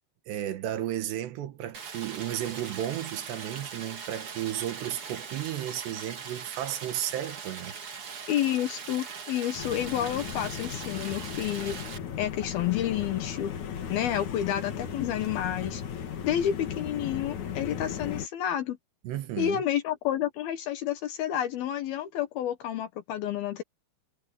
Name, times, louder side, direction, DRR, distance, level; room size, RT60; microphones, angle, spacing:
voice 1, 0.3-8.2 19.1-19.6, right 12 dB, 80° right, 3.5 m, -34 dB
Stream, 1.7-12.0, right 6 dB, 40° right, 2.4 m, -41 dB
voice 2, 8.3-13.6 13.9-15.8 16.2-18.8 19.4-23.6, left 11 dB, 70° left, 2.9 m, -30 dB
sound 1, 9.5-18.3, left 8 dB, 50° left, 2.9 m, -36 dB
omnidirectional pair, 4.9 m